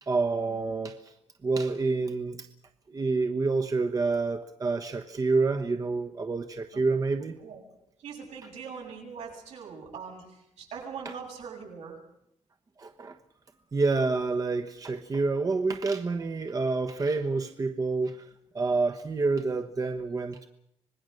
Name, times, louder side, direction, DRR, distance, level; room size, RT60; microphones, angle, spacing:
voice 1, 0.0-1.1 1.4-2.5 2.9-7.4 11.0-11.1 12.8-13.2 13.7-18.2 18.5-20.5, right 3 dB, 30° right, 6 dB, 1.3 m, -28 dB
voice 2, 8.0-11.9, right 6 dB, 80° right, -1 dB, 7.9 m, -42 dB
26.0 x 20.0 x 6.6 m, 0.77 s
cardioid pair, 120°, 11 cm